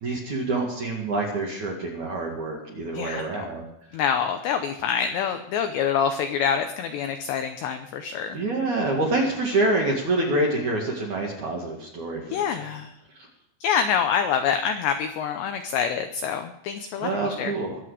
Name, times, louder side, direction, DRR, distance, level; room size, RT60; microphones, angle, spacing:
voice 1, 0.0-3.6 8.3-12.7 17.0-17.8, right 2 dB, 55° right, -1 dB, 2.4 m, -26 dB
voice 2, 2.9-3.5 3.9-8.4 12.3-12.9 13.6-17.5, left 7 dB, 85° left, 7 dB, 2.5 m, -26 dB
22.0 x 7.8 x 4.9 m, 0.84 s
omnidirectional pair, 5.9 m